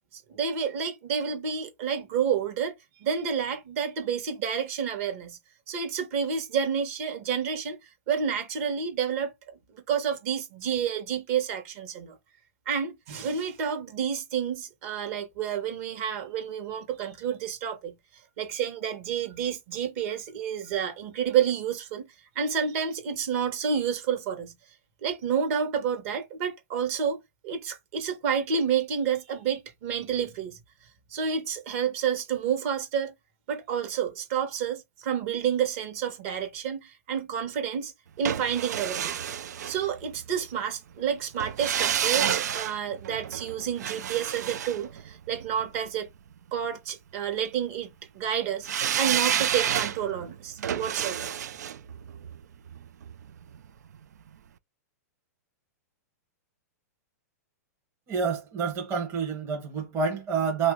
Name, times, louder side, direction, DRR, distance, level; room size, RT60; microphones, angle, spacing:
voice 1, 0.1-2.7 3.0-5.4 5.7-7.8 8.1-12.2 12.7-17.9 18.4-22.1 22.3-24.5 25.0-30.6 31.1-33.1 33.5-39.2 39.6-46.1 46.5-47.9 48.1-48.7 48.9-51.3, right 7 dB, 55° right, 1.2 m, -29 dB
sound 1, 38.3-40.4 41.4-45.7 48.7-53.7 54.0-54.1, right 9 dB, 80° right, 0.4 m, -30 dB
voice 2, 58.1-60.7, right 5 dB, 30° right, 0.9 m, -28 dB
3.0 x 2.6 x 3.6 m
hypercardioid pair, 130°, 9 cm